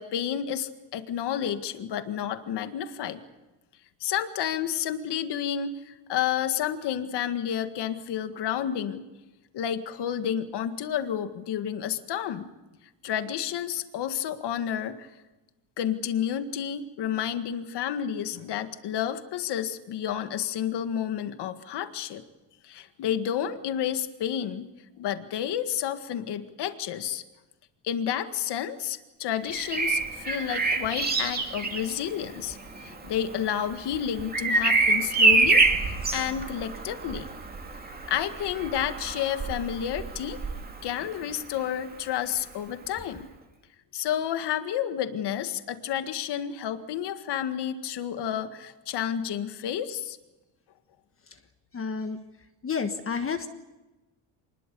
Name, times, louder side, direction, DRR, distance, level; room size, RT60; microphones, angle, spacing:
voice 1, 0.0-3.2 4.0-9.0 9.5-12.5 13.0-15.1 15.8-22.2 22.6-24.7 25.0-27.2 27.8-37.3 38.1-40.4 40.8-43.3 43.9-50.2, left 9 dB, 55° left, 8 dB, 1.9 m, -30 dB
Bird vocalization bird call bird song, 29.4-41.2 43.0-43.2, right 3 dB, 20° right, 2.5 m, -27 dB
voice 2, 51.7-52.2 52.6-53.5, left 5 dB, 30° left, 7 dB, 1.4 m, -30 dB
26.0 x 21.0 x 7.0 m, 1.1 s
cardioid pair, 140°, 47 cm